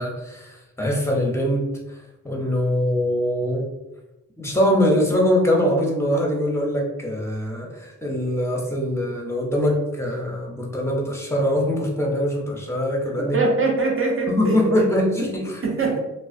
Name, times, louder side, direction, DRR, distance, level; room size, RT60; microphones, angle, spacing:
voice 1, 0.0-1.8 2.2-3.7 4.4-13.4 14.3-15.6, left 1 dB, 10° left, 0 dB, 0.8 m, -23 dB
voice 2, 13.2-14.7 15.2-15.3 15.6-16.0, right 3 dB, 40° right, -1 dB, 0.8 m, -22 dB
2.3 x 2.2 x 2.5 m, 0.97 s
supercardioid pair, 50°, 34 cm